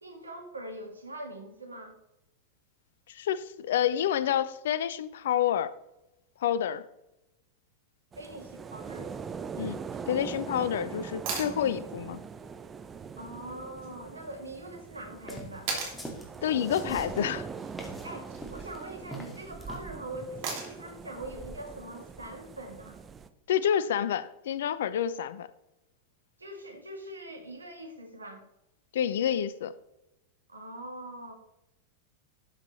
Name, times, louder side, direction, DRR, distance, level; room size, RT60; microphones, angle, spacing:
voice 1, 0.0-2.0 8.2-9.1 13.2-15.7 18.0-23.0 26.4-28.4 30.5-31.3, right 1 dB, 80° right, 3 dB, 1.9 m, -42 dB
voice 2, 3.1-5.7 6.4-6.8 9.6-12.2 16.4-17.5 23.5-25.5 28.9-29.7, left 9 dB, 60° left, 15 dB, 0.6 m, -28 dB
sound 1, 8.1-23.3, right 6 dB, 20° right, 0.7 m, -42 dB
sound 2, 11.3-11.6 13.8-13.9 15.7-16.0 18.0-18.4 20.4-20.9 23.0-23.1, right 4 dB, 45° right, 2.8 m, -34 dB
sound 3, 15.1-19.9, right 1 dB, 5° left, 2.1 m, -44 dB
12.5 x 7.3 x 3.2 m, 0.89 s
figure-of-eight pair, 90°, 0 cm